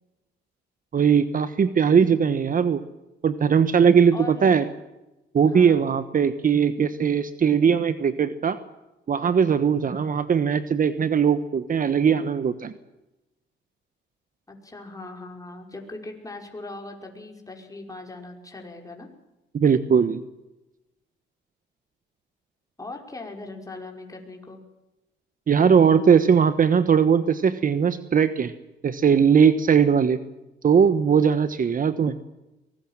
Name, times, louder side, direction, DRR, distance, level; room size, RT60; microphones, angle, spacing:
voice 1, 0.9-2.8 3.2-4.6 5.3-8.6 9.1-12.7 19.5-20.2 25.5-28.5 28.8-30.2 30.6-32.2, right 7 dB, 45° right, 12 dB, 1.3 m, -19 dB
voice 2, 4.1-4.5 5.5-5.9 14.5-19.1 22.8-24.6, left 2 dB, 15° left, 2 dB, 5.4 m, -39 dB
23.0 x 19.5 x 7.4 m, 0.98 s
cardioid pair, 90°, 20 cm